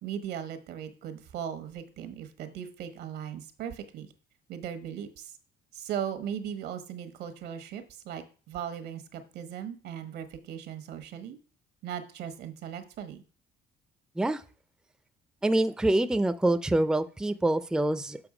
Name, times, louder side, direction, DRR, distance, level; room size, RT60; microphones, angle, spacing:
voice 1, 0.0-4.1 4.5-5.3 5.7-11.4 11.8-13.2, right 9 dB, 75° right, 10 dB, 1.2 m, -38 dB
voice 2, 15.4-18.2, right 1 dB, 5° right, 11 dB, 0.4 m, -25 dB
7.0 x 5.8 x 4.9 m, 0.38 s
cardioid pair, 110°, 17 cm